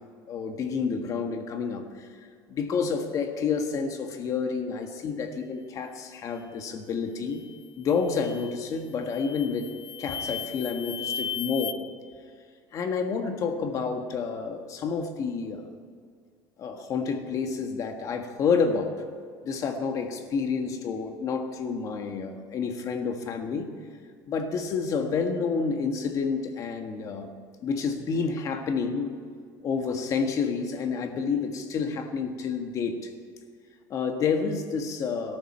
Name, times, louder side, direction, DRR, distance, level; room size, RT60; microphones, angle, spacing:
voice 1, 0.3-2.1 2.5-7.4 7.8-11.8 12.7-15.6 16.6-18.9 19.4-23.7 24.3-27.3 27.6-29.1 29.6-33.1 33.9-35.4, left 5 dB, 40° left, 5 dB, 1.6 m, -29 dB
sound 1, 7.3-7.6 8.1-8.6 9.1-11.7, left 8 dB, 65° left, 0.8 m, -36 dB
18.0 x 13.0 x 4.4 m, 2.1 s
cardioid pair, 150°, 9 cm